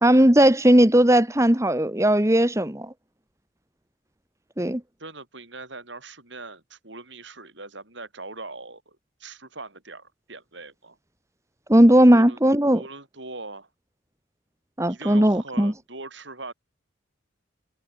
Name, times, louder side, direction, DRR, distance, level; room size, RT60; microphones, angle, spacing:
voice 1, 0.0-2.9 4.6-4.8 11.7-12.8 14.8-15.7, right 1 dB, 15° right, 1.6 m, -17 dB
voice 2, 5.0-11.0 12.1-12.4 12.7-13.7 14.9-16.5, right 3 dB, 65° right, 7.1 m, -41 dB
head